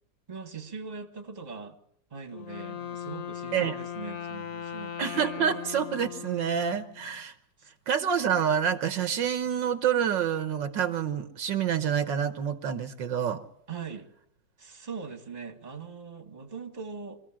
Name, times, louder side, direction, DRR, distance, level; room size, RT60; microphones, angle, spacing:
voice 1, 0.3-1.8 2.1-5.0 7.6-7.7 13.7-14.1 14.6-17.2, right 5 dB, 20° right, 5 dB, 1.9 m, -41 dB
Wind instrument woodwind instrument, 2.3-7.2, left 9 dB, 55° left, 1.2 m, -39 dB
voice 2, 5.0-7.3 7.9-13.4, right 8 dB, 75° right, 9 dB, 1.7 m, -27 dB
24.5 x 15.5 x 7.5 m, 0.73 s
omnidirectional pair, 2.0 m